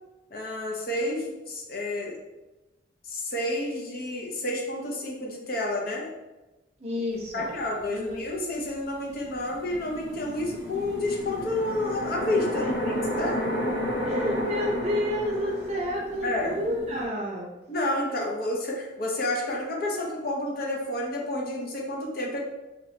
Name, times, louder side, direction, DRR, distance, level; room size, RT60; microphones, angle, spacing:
voice 1, 0.3-2.2 3.0-6.1 7.3-13.4 16.2-16.6 17.7-22.4, left 1 dB, 50° left, -1 dB, 0.6 m, -30 dB
voice 2, 6.8-7.5 7.9-8.2 12.6-12.7 14.0-17.5, left 1 dB, 35° right, -2 dB, 0.6 m, -30 dB
sound 1, 7.8-7.9 9.1-17.1, equal, 85° left, 1.0 m, -32 dB
2.8 x 2.6 x 3.2 m, 1.1 s
head